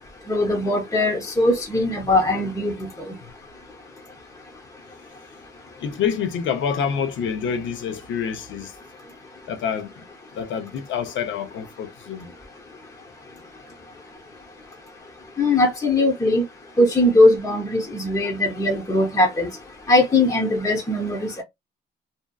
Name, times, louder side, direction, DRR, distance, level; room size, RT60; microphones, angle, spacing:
voice 1, 0.3-2.9 15.4-16.4 16.8-19.5 19.9-21.4, left 2 dB, 15° left, 0.7 m, -20 dB
voice 2, 5.8-8.7 9.5-9.9 10.3-12.3, left 7 dB, 75° left, 0.6 m, -27 dB
2.6 x 2.2 x 2.2 m
cardioid pair, 90°, 20 cm